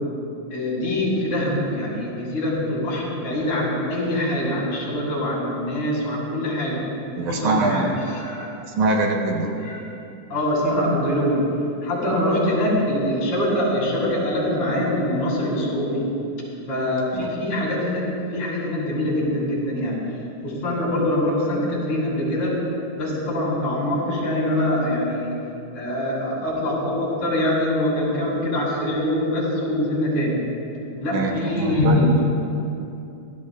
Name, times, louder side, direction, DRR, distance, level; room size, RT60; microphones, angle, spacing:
voice 1, 0.5-8.5 9.6-9.8 10.3-11.5 11.8-16.1 16.7-18.0 18.3-20.0 20.4-22.5 22.9-25.3 25.7-30.4 31.0-32.2, left 1 dB, 70° left, -5 dB, 4.2 m, -24 dB
voice 2, 7.2-8.0 8.7-9.5 31.1-32.2, right 3 dB, 80° right, 1 dB, 2.4 m, -23 dB
16.5 x 13.0 x 2.3 m, 2.7 s
omnidirectional pair, 3.5 m